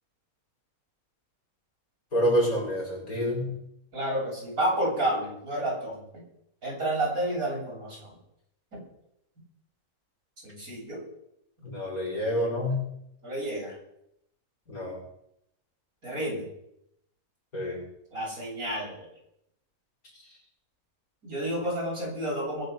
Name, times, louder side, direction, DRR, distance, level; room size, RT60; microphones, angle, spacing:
voice 1, 2.1-3.5 11.6-12.8 14.7-15.0 17.5-17.8, equal, 65° left, -3 dB, 6.6 m, -27 dB
voice 2, 3.9-6.0 6.6-8.2 8.7-8.8 10.4-11.0 13.2-13.8 16.0-16.4 18.1-19.1 21.2-22.6, right 1 dB, 65° right, -3 dB, 8.7 m, -30 dB
22.0 x 7.8 x 7.0 m, 0.76 s
omnidirectional pair, 1.6 m